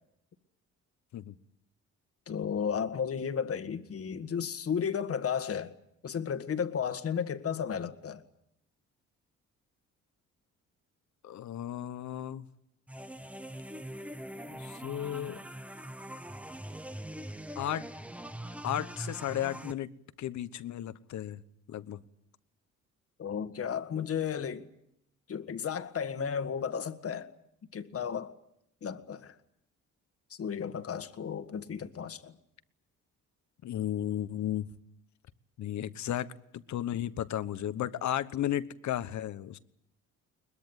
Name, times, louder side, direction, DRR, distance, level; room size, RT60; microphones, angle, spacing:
voice 1, 2.3-5.7 6.0-8.2 23.2-24.6 25.3-27.3 27.7-28.3 28.8-29.3 30.3-32.3, left 7 dB, 50° left, 1.7 m, -33 dB
voice 2, 11.2-12.4 14.5-15.4 17.5-17.9 18.6-19.9 20.2-21.4 21.7-22.0 33.6-34.7 35.6-36.3 36.7-39.6, left 11 dB, 70° left, 1.2 m, -34 dB
sound 1, 12.9-19.7, right 1 dB, 5° right, 0.9 m, -42 dB
22.0 x 21.0 x 9.2 m
cardioid pair, 90°, 30 cm